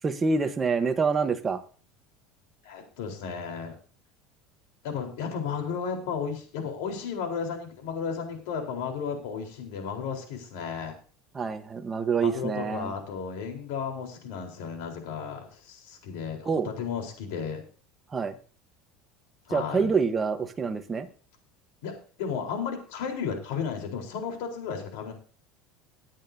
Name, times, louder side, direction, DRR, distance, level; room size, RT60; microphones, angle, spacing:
voice 1, 0.0-1.6 11.3-12.9 16.4-16.7 18.1-18.4 19.5-21.1, right 5 dB, 20° right, 8 dB, 1.1 m, -26 dB
voice 2, 2.6-3.8 4.8-11.0 12.2-17.6 19.5-19.9 21.8-25.1, left 6 dB, 80° left, 3 dB, 3.9 m, -34 dB
20.0 x 8.9 x 2.7 m, 0.39 s
cardioid pair, 145°, 0 cm